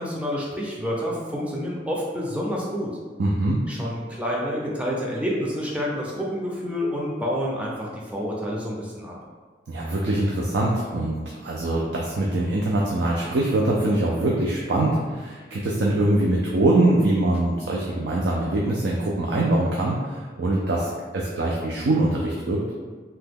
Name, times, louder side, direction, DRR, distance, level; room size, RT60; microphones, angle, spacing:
voice 1, 0.0-2.9 3.7-9.1, equal, 5° right, -4 dB, 0.5 m, -28 dB
voice 2, 3.2-3.6 9.7-22.6, right 1 dB, 70° right, -3 dB, 0.4 m, -23 dB
2.8 x 2.2 x 3.5 m, 1.5 s
head